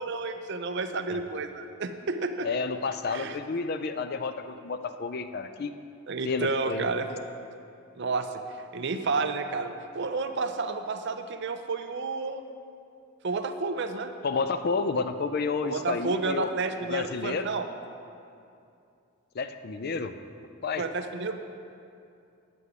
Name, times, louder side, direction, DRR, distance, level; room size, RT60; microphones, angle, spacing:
voice 1, 0.0-2.5 3.1-3.4 6.1-7.3 8.0-8.3 8.7-12.4 13.2-14.1 15.6-17.7 20.8-21.4, right 3 dB, 50° right, 7 dB, 0.5 m, -31 dB
voice 2, 2.4-5.7 6.2-6.9 14.2-16.5 16.9-17.5 19.3-20.1 20.6-20.8, left 4 dB, 45° left, 9 dB, 0.4 m, -30 dB
9.6 x 6.9 x 5.0 m, 2.5 s
head